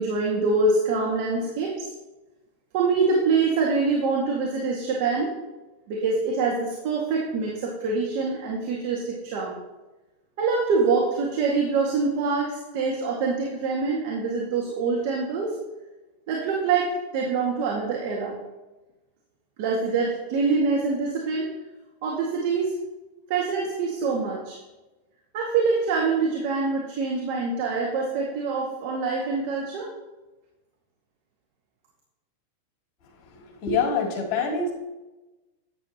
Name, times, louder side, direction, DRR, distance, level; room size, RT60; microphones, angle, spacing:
voice 1, 0.0-1.9 2.7-5.3 5.9-9.6 10.4-15.6 16.3-18.4 19.6-21.5 22.0-22.7 23.3-24.6 25.3-29.9, right 4 dB, 55° right, -2 dB, 2.0 m, -25 dB
voice 2, 33.3-34.7, left 4 dB, 45° left, -3 dB, 3.9 m, -26 dB
12.0 x 9.1 x 3.0 m, 1.1 s
hypercardioid pair, 125°, 0 cm